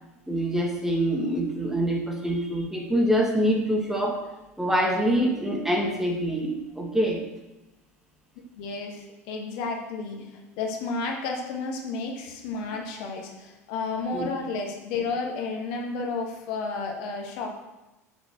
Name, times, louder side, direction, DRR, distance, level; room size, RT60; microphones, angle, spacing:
voice 1, 0.3-4.2 4.6-7.2 14.1-14.3, equal, 5° right, 1 dB, 1.9 m, -25 dB
voice 2, 8.6-17.5, left 4 dB, 55° left, 1 dB, 1.9 m, -32 dB
7.2 x 7.1 x 6.9 m, 0.99 s
figure-of-eight pair, 80°, 8 cm